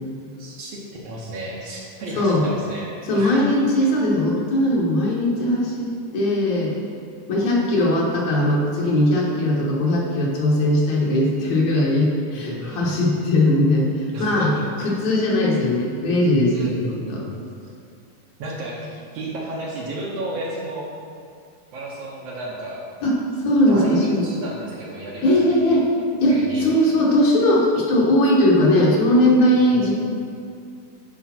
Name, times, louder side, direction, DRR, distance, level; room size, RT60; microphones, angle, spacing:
voice 1, 0.4-0.8 1.0-3.5 3.8-3.9 12.3-12.9 14.1-15.3 16.5-17.4 17.6-17.7 18.4-18.9 19.1-20.9 21.7-22.8 23.7-25.8 26.3-26.9 29.7-30.0, right 1 dB, 65° right, -3 dB, 1.8 m, -33 dB
voice 2, 3.1-6.7 7.3-14.5 14.8-17.2 23.0-23.1 23.4-24.2 25.2-25.9 26.2-30.0, left 1 dB, 65° left, -4 dB, 2.5 m, -19 dB
10.0 x 5.3 x 4.3 m, 2.4 s
omnidirectional pair, 3.5 m